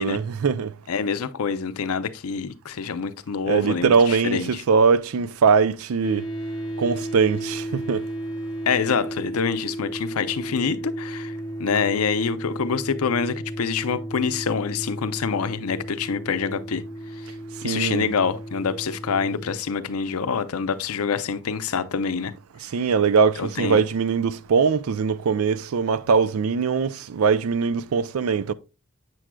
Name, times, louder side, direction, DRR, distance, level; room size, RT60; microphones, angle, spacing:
voice 1, 0.0-0.7 3.5-4.4 4.7-6.3 6.8-8.1 17.6-18.1 22.6-28.5, right 5 dB, 75° right, 0.4 m, -21 dB
voice 2, 0.9-4.6 8.7-16.8 17.1-17.3 17.6-22.3 23.4-23.8, left 6 dB, 85° left, 0.5 m, -26 dB
sound 1, 6.0-19.6, right 1 dB, 15° left, 0.8 m, -34 dB
7.6 x 6.1 x 2.2 m
head